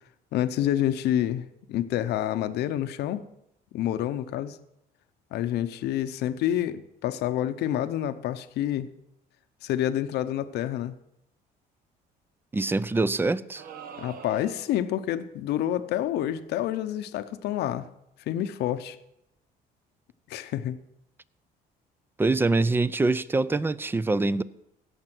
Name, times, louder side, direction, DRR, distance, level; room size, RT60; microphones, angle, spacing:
voice 1, 0.3-3.2 3.7-4.6 5.3-8.9 9.6-11.0 14.0-17.9 18.3-19.0 20.3-20.8, left 11 dB, 75° left, 0.8 m, -28 dB
voice 2, 12.5-13.6 22.2-24.4, right 3 dB, 15° right, 0.5 m, -24 dB
sound 1, 13.6-14.9, right 7 dB, 60° right, 1.0 m, -43 dB
16.5 x 6.7 x 6.1 m
cardioid pair, 110°, 17 cm